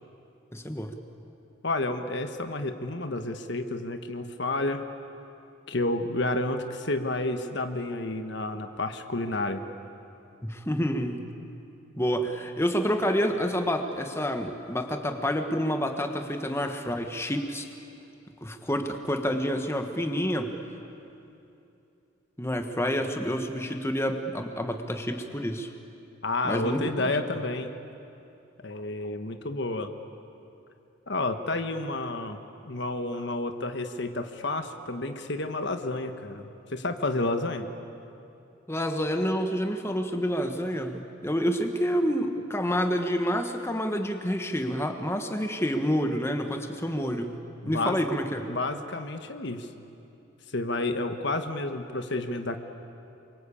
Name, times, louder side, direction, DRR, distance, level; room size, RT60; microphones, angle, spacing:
voice 1, 0.5-0.9 10.4-11.3 12.0-17.7 18.4-20.5 22.4-25.7 26.4-27.4 38.7-47.3 47.7-48.5, equal, 15° left, 5 dB, 1.5 m, -28 dB
voice 2, 1.6-4.8 5.7-9.6 26.2-27.7 28.6-29.9 31.1-32.4 32.7-37.7 47.6-48.0 48.5-49.7 50.5-52.6, left 2 dB, 60° left, 7 dB, 1.4 m, -30 dB
28.0 x 24.0 x 8.6 m, 2.8 s
head